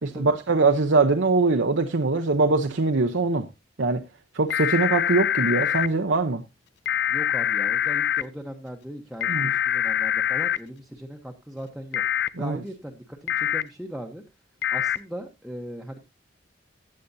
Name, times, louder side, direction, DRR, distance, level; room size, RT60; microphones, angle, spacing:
voice 1, 0.0-3.5 3.8-4.0 4.3-6.4 9.3-9.5 12.4-12.6, right 3 dB, 70° right, 0.8 m, -22 dB
sound 1, 4.5-5.9 6.9-8.2 9.2-10.6 11.9-12.3 13.3-13.6 14.6-15.0, left 10 dB, 60° left, 0.5 m, -24 dB
voice 2, 7.1-12.0 12.4-14.2 14.7-16.0, equal, ahead, 1.0 m, -38 dB
15.5 x 9.3 x 2.7 m
head